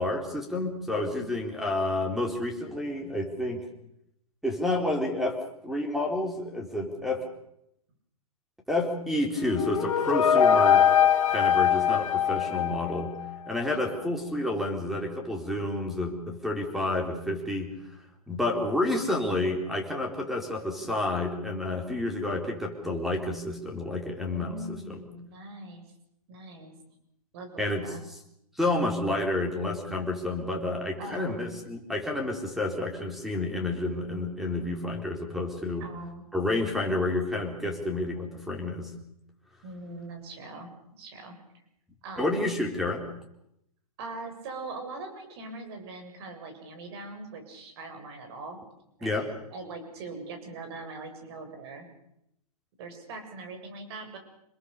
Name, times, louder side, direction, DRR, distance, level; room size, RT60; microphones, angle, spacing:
voice 1, 0.0-3.7 4.4-5.4 5.6-7.3 8.7-10.9 11.3-13.1 13.5-17.7 18.3-25.0 27.6-27.9 28.6-35.9 36.3-38.9 42.2-43.0 49.0-49.3, left 2 dB, ahead, 3 dB, 4.3 m, -29 dB
voice 2, 1.1-1.4 13.7-14.1 24.3-25.8 26.3-26.7 27.3-28.0 31.0-31.5 35.8-36.2 39.6-41.4 42.0-42.5 44.0-48.6 49.0-51.9 52.8-54.2, right 3 dB, 40° right, 6 dB, 7.3 m, -42 dB
sound 1, 9.4-13.3, left 8 dB, 60° left, 2.7 m, -22 dB
27.5 x 21.0 x 6.8 m, 0.79 s
hypercardioid pair, 145°, 19 cm